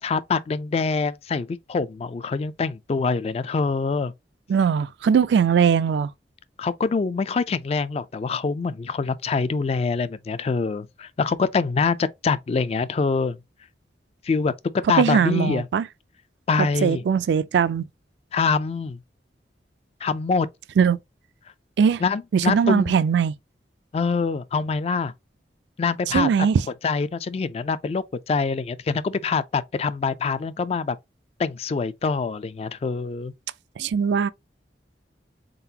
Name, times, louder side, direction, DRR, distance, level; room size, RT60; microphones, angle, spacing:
voice 1, 0.0-4.1 6.6-13.4 14.2-14.5 14.9-15.7 16.5-17.0 18.3-19.0 20.0-20.5 22.0-22.9 23.9-25.1 25.8-26.3 26.8-31.0 31.4-33.3, left 4 dB, 35° left, 0.3 m, -25 dB
voice 2, 4.5-6.1 15.0-15.8 16.6-17.8 20.8-21.0 21.8-22.0 22.3-23.3 26.1-26.6 33.8-34.3, right 7 dB, 70° right, 0.3 m, -20 dB
3.9 x 3.8 x 2.7 m
head